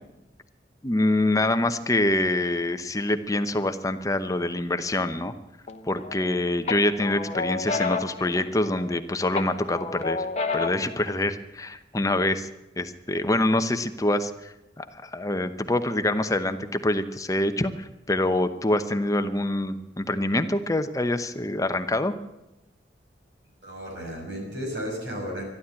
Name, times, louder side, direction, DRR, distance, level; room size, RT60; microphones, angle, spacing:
voice 1, 0.8-5.3 5.8-10.3 10.5-12.5 12.8-22.1, left 1 dB, 20° left, 9 dB, 0.8 m, -25 dB
sound 1, 5.7-6.3 6.7-9.0 9.3-11.0, left 4 dB, 40° left, 1.1 m, -30 dB
voice 2, 23.6-25.4, equal, 80° right, 0 dB, 6.0 m, -33 dB
13.0 x 12.0 x 8.8 m, 0.91 s
head